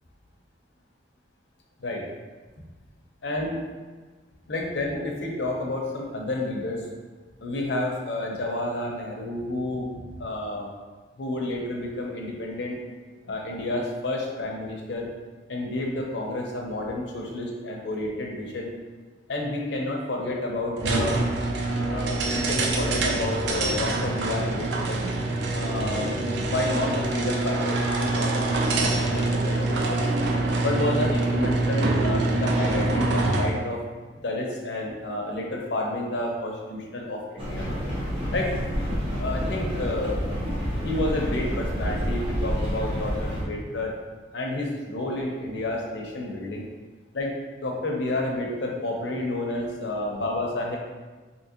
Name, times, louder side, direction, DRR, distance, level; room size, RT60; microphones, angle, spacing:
voice 1, 3.2-3.6 4.5-6.9 7.4-9.9 10.2-10.7 11.2-12.8 13.2-15.1 15.5-18.7 19.3-21.2 21.9-25.0 25.5-26.1 26.4-30.0 30.6-33.8 34.2-37.6 38.3-38.5 39.2-40.2 40.8-43.9 44.3-46.6 47.1-47.3 47.6-50.8, left 2 dB, 65° left, 0 dB, 0.6 m, -30 dB
sound 1, 20.8-33.6, right 2 dB, 60° right, 0.4 m, -25 dB
sound 2, 37.4-43.4, equal, 30° right, 1.0 m, -28 dB
3.6 x 2.8 x 2.8 m, 1.3 s
head